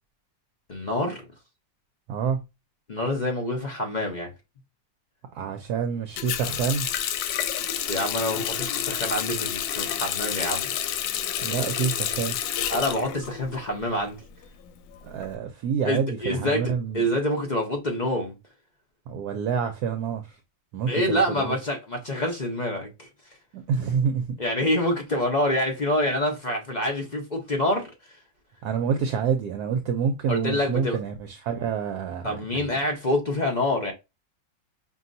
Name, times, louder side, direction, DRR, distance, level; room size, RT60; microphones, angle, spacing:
voice 1, 0.7-1.2 2.9-4.3 7.9-11.0 12.7-14.2 15.8-18.4 20.9-23.1 24.4-28.2 30.3-31.0 32.2-33.9, left 1 dB, 50° left, 0.5 m, -27 dB
voice 2, 2.1-2.4 5.3-6.9 11.4-12.4 15.0-17.1 19.1-20.4 20.7-21.6 23.5-24.4 28.6-32.7, right 6 dB, 70° right, 1.0 m, -27 dB
Water tap faucet, 6.2-13.9 14.2-15.3, left 10 dB, 85° left, 1.3 m, -29 dB
5.4 x 2.8 x 2.5 m
omnidirectional pair, 1.9 m